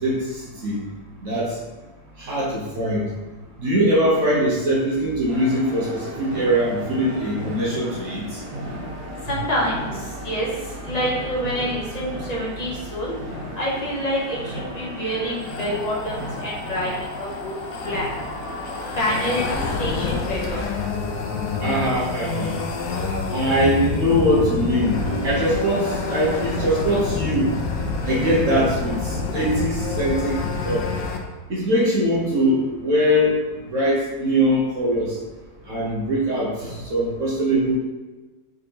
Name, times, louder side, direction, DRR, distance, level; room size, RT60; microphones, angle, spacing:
voice 1, 0.0-0.8 1.2-1.6 2.2-3.1 3.6-8.4 9.3-9.4 21.6-22.7 23.3-24.9 25.2-27.5 28.0-30.8 31.5-33.4 33.7-35.2 35.7-37.8, equal, 50° right, -6 dB, 1.2 m, -22 dB
sound 1, 5.3-19.7, equal, 30° right, 0.8 m, -35 dB
voice 2, 9.3-10.5 10.8-13.1 13.5-17.5 17.8-18.1 19.0-19.5 19.8-20.6, equal, 25° left, -7 dB, 1.0 m, -27 dB
sound 2, 15.4-31.2, left 4 dB, 70° left, 0.9 m, -28 dB
sound 3, 24.8-29.5, right 2 dB, 85° right, 1.3 m, -37 dB
5.2 x 3.4 x 2.9 m, 1.2 s
omnidirectional pair, 1.9 m